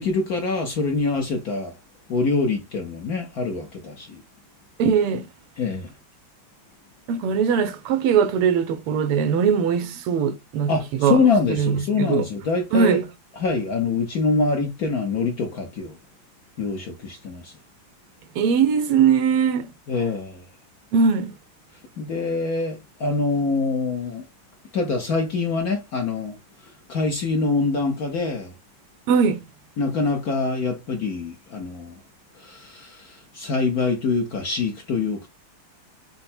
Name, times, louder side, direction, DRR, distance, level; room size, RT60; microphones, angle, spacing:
voice 1, 0.0-1.8 2.1-4.2 5.6-5.9 10.7-13.0 13.4-16.0 16.6-17.5 19.9-20.4 22.0-24.3 24.7-26.4 26.9-28.5 29.8-32.0 32.4-35.3, left 4 dB, 65° left, 0.9 m, -25 dB
voice 2, 4.8-5.3 7.1-11.2 11.5-12.3 12.7-13.1 18.4-19.7 20.9-21.3 29.1-29.4, right 6 dB, 90° right, 1.7 m, -20 dB
5.6 x 2.1 x 4.2 m
omnidirectional pair, 2.4 m